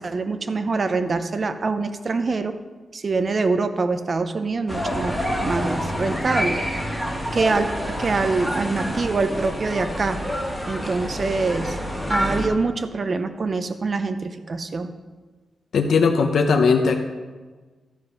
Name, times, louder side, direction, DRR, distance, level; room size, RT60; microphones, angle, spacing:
voice 1, 0.0-2.6 2.9-7.0 7.3-10.2 10.7-11.8 12.1-14.9, right 3 dB, 40° right, 9 dB, 0.6 m, -25 dB
sound 1, 4.7-12.5, equal, 10° right, 1.5 m, -27 dB
voice 2, 15.7-17.0, left 5 dB, 75° left, 4 dB, 0.8 m, -18 dB
13.0 x 5.3 x 5.8 m, 1.3 s
wide cardioid pair, 145°, 0 cm